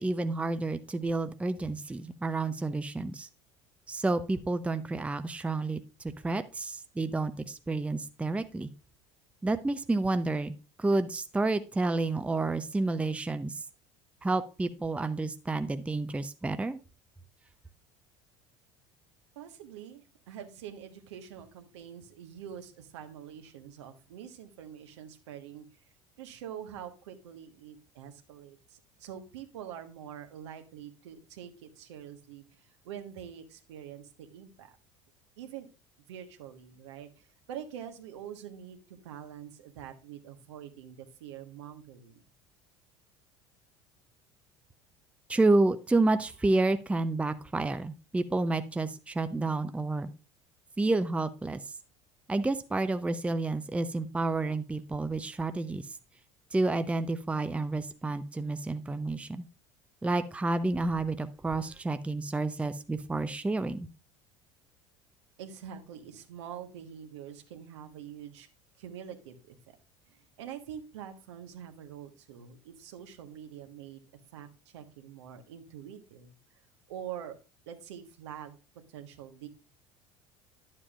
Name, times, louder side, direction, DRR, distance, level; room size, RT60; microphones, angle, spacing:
voice 1, 0.0-3.3 3.9-8.7 9.4-10.5 10.8-13.5 14.2-16.8 45.3-50.1 50.8-51.6 52.3-55.9 56.5-59.4 60.0-63.9, right 2 dB, 10° right, 10 dB, 0.6 m, -30 dB
voice 2, 19.3-25.6 26.2-34.8 35.4-35.7 36.1-42.2 65.4-68.5 68.8-69.8 70.1-74.0 74.3-76.4 76.9-77.4 77.7-78.6 78.9-79.5, right 9 dB, 70° right, 6 dB, 1.3 m, -45 dB
11.0 x 7.5 x 2.4 m, 0.32 s
figure-of-eight pair, 70°, 15 cm